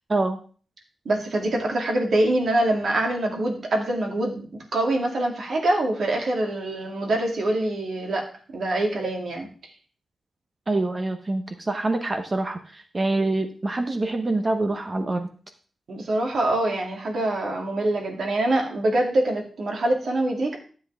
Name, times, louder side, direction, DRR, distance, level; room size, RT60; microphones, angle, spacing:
voice 1, 1.0-4.5 4.7-8.3 8.5-9.5 15.9-20.6, right 1 dB, 60° right, 1 dB, 2.6 m, -24 dB
voice 2, 10.7-15.3, right 2 dB, 25° right, 7 dB, 0.8 m, -25 dB
12.5 x 7.9 x 3.5 m, 0.40 s
wide cardioid pair, 175°, 0 cm